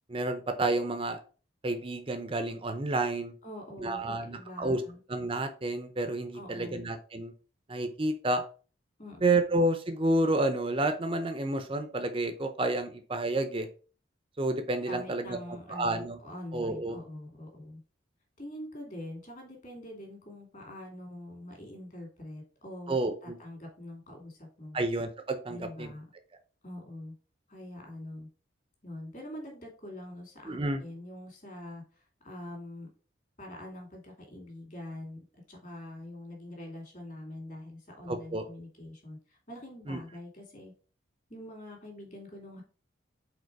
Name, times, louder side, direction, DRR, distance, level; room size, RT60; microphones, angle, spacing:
voice 1, 0.1-1.2 1.6-3.3 3.8-4.8 5.1-7.3 7.7-8.4 9.2-13.7 14.4-15.4 15.7-16.2 16.5-17.0 22.9-23.4 24.7-25.9 30.5-30.8 38.1-38.4 39.9-40.0, right 2 dB, 25° right, 8 dB, 0.6 m, -30 dB
voice 2, 3.4-5.0 6.3-6.9 9.0-9.3 14.8-17.8 18.4-22.9 23.2-24.8 25.5-26.1 26.6-27.1 27.5-28.3 28.8-32.9 33.4-35.2 35.5-40.7 41.3-42.6, left 1 dB, 40° left, 2 dB, 2.5 m, -44 dB
5.1 x 4.2 x 4.7 m, 0.37 s
head